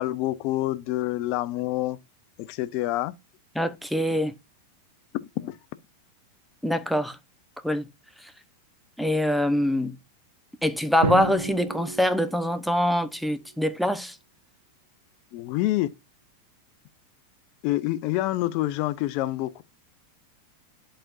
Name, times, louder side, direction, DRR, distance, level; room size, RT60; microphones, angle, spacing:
voice 1, 0.0-2.0 2.4-3.1 5.4-5.6 15.3-15.9 17.6-19.6, left 16 dB, 45° left, 0.7 m, -27 dB
voice 2, 3.6-4.3 6.6-7.2 7.6-7.9 9.0-10.0 10.6-14.2, left 1 dB, ahead, 0.8 m, -24 dB
Drum, 11.0-13.2, right 3 dB, 70° right, 1.5 m, -31 dB
11.0 x 4.4 x 2.6 m
figure-of-eight pair, 90°, 0 cm